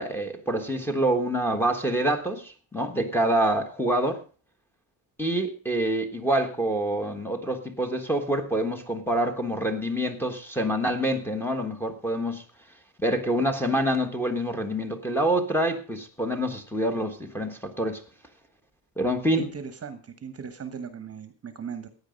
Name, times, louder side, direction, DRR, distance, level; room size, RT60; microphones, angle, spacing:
voice 1, 0.0-4.2 5.2-12.4 13.0-18.0 19.0-19.4, right 1 dB, 5° left, 4 dB, 1.4 m, -26 dB
voice 2, 19.4-21.9, right 6 dB, 30° right, 10 dB, 1.1 m, -38 dB
15.5 x 9.7 x 5.2 m, 0.38 s
cardioid pair, 175°, 48 cm